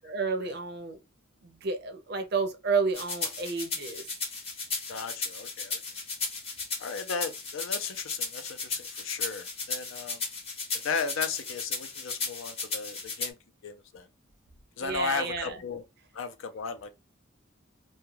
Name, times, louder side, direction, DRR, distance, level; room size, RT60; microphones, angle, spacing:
voice 1, 0.0-1.0 1.4-4.0 14.8-15.6, right 4 dB, 50° right, 0.5 m, -31 dB
sound 1, 2.9-13.3, left 4 dB, 30° left, 0.7 m, -35 dB
voice 2, 4.9-5.8 6.8-10.2 10.8-13.4 13.6-14.1 14.8-15.8 16.1-16.9, left 5 dB, 80° left, 0.5 m, -35 dB
2.3 x 2.2 x 3.0 m
head